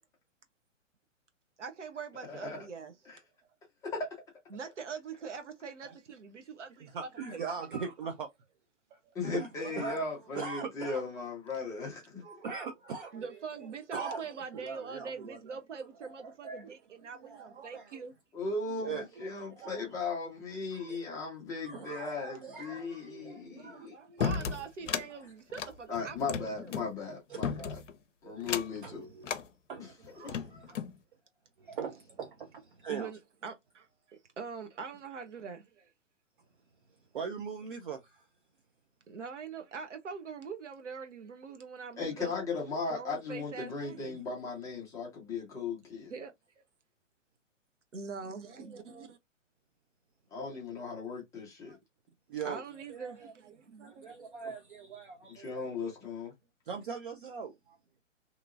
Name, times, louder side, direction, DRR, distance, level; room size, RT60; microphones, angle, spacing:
voice 1, 1.6-3.2 4.5-7.4 7.7-7.8 9.6-10.1 13.1-18.2 23.5-26.8 28.7-28.8 29.1-29.2 30.3-30.5 32.9-35.9 39.1-42.3 42.9-44.2 46.1-46.6 47.9-49.1 52.4-54.3, right 5 dB, 65° right, 0.9 m, -44 dB
voice 2, 2.3-2.7 3.8-4.1 9.1-12.4 18.3-23.9 24.3-24.4 25.9-27.8 28.2-29.1 29.8-29.9 30.2-30.3 42.0-46.1 50.3-51.8 55.3-56.3, left 4 dB, 10° left, 0.6 m, -37 dB
voice 3, 6.8-8.3 9.0-10.1 10.3-11.0 12.2-13.2 13.9-14.2 14.5-15.6 16.4-16.7 17.2-18.0 18.7-19.9 20.7-21.1 21.6-23.9 24.2-24.5 27.3-27.8 28.2-28.4 28.8-29.4 29.7-30.8 31.6-33.1 37.1-38.3 51.7-51.8 52.3-52.6 52.9-53.3 53.8-55.8 56.7-57.8, right 6 dB, 45° right, 0.6 m, -41 dB
sound 1, 24.2-25.1 25.5-26.9 27.4-27.9 28.4-28.8 29.2-29.5 30.0-31.0, left 6 dB, 70° left, 0.6 m, -34 dB
2.9 x 2.7 x 2.5 m
figure-of-eight pair, 125°, 38 cm